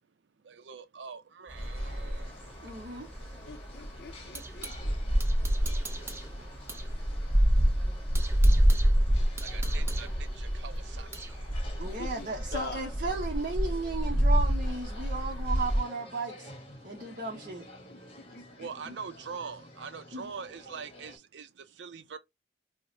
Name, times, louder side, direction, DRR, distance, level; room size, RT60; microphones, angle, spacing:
voice 1, 0.4-2.3 8.3-8.4 9.4-11.8 16.8-16.9 18.2-22.2, right 6 dB, 80° right, 0.5 m, -44 dB
sound 1, 1.5-15.8, equal, 10° left, 1.1 m, -28 dB
sound 2, 1.6-21.2, left 1 dB, 35° left, 0.9 m, -51 dB
sound 3, 1.6-4.8 5.2-6.9 7.2-7.3 7.7-11.4, right 3 dB, 15° right, 0.6 m, -44 dB
voice 2, 2.6-3.1 5.0-6.6 11.8-16.5 16.8-17.6 18.9-19.0 20.1-20.3, right 3 dB, 50° right, 0.8 m, -36 dB
voice 3, 3.5-5.1 11.8-12.9 17.9-18.7, left 4 dB, 60° left, 0.5 m, -45 dB
4.5 x 2.1 x 2.6 m
head